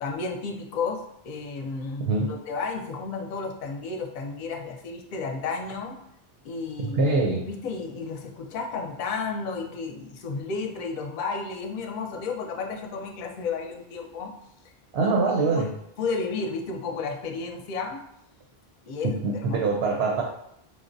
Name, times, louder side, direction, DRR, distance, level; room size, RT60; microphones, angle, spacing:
voice 1, 0.0-6.0 6.4-7.0 7.4-14.3 15.0-15.1 15.5-15.6 16.0-18.0 18.9-19.6, left 4 dB, 55° left, 2 dB, 0.6 m, -32 dB
voice 2, 2.0-2.4 6.8-7.5 14.9-15.7 19.0-20.2, right 3 dB, 85° right, 0 dB, 0.8 m, -24 dB
4.6 x 2.0 x 2.6 m, 0.74 s
omnidirectional pair, 1.0 m